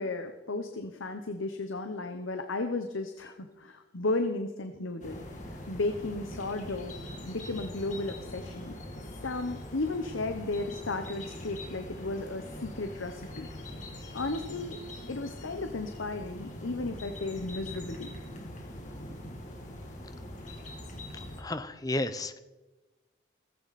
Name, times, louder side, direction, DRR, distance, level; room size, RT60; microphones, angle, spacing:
voice 1, 0.0-7.0 7.3-8.7 9.2-13.5 14.1-14.8 15.1-18.1, left 2 dB, 90° left, 7 dB, 1.0 m, -34 dB
sound 1, 5.0-21.4, left 1 dB, 40° left, 2.6 m, -43 dB
voice 2, 21.4-22.4, left 1 dB, 20° left, 12 dB, 0.7 m, -32 dB
16.0 x 15.5 x 4.2 m, 1.1 s
head